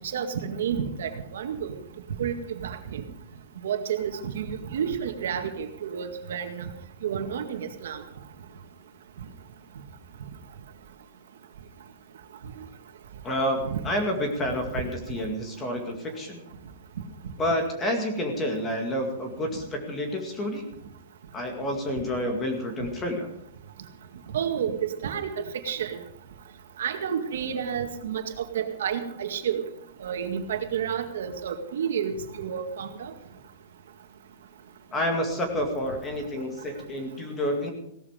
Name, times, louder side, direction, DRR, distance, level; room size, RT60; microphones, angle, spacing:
voice 1, 0.1-1.7 2.2-2.3 2.6-3.0 3.6-6.7 7.0-8.0 13.7-13.8 24.3-26.0 26.8-29.6 30.0-33.1, right 8 dB, 75° right, 6 dB, 2.0 m, -30 dB
voice 2, 13.2-13.6 13.8-16.4 17.4-20.6 21.3-23.3 34.9-37.7, left 1 dB, 15° left, 3 dB, 2.1 m, -29 dB
17.0 x 13.5 x 5.1 m, 0.72 s
supercardioid pair, 180°, 0 cm